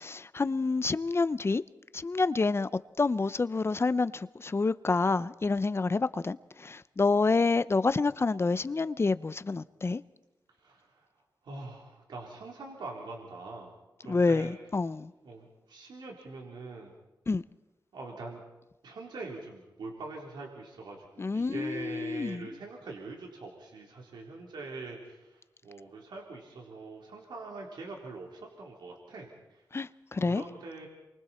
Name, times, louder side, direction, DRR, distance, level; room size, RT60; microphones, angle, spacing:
voice 1, 0.0-1.6 1.9-2.7 3.0-10.0 14.1-15.1 17.3-17.4 21.2-22.5 29.7-30.4, left 3 dB, 35° left, 0.7 m, -28 dB
voice 2, 10.6-11.1 11.4-13.7 14.0-14.5 15.2-16.9 17.9-18.4 18.8-29.6 30.1-30.9, right 3 dB, 90° right, 3.7 m, -43 dB
28.5 x 24.0 x 4.4 m
wide cardioid pair, 85°, 7 cm